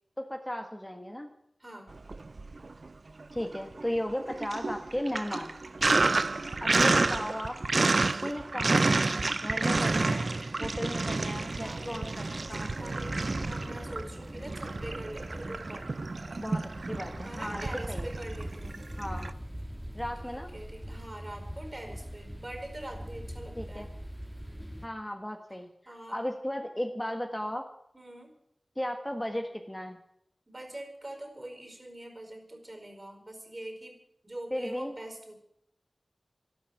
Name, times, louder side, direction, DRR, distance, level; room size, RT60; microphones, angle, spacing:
voice 1, 0.2-1.3 3.3-5.5 6.6-7.6 8.2-12.7 16.4-18.1 19.0-19.3 19.9-20.5 23.6-23.9 24.8-25.7 26.1-27.6 28.7-30.0 34.5-35.0, equal, 15° left, 5 dB, 1.5 m, -35 dB
voice 2, 1.6-2.0 5.9-6.5 11.5-12.2 12.5-15.9 17.2-18.8 20.2-23.9 25.8-26.2 27.9-28.3 30.5-35.3, right 1 dB, 35° right, 5 dB, 4.7 m, -44 dB
Sink (filling or washing), 2.0-2.9 3.2-19.3, right 3 dB, 65° right, 0.5 m, -30 dB
sound 1, 11.3-24.9, equal, 5° right, 2.4 m, -42 dB
12.5 x 12.0 x 9.3 m, 0.76 s
wide cardioid pair, 45°, 0 cm